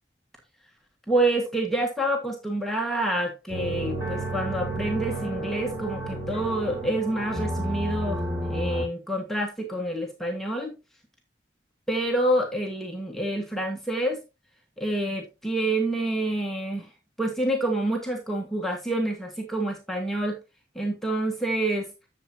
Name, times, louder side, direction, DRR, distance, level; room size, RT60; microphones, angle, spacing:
voice 1, 1.1-10.7 11.9-14.2 14.8-16.9 17.2-20.4 20.7-21.9, right 1 dB, ahead, 1.6 m, -27 dB
sound 1, 3.5-8.8, right 1 dB, 15° right, 3.9 m, -31 dB
11.5 x 7.3 x 2.9 m
head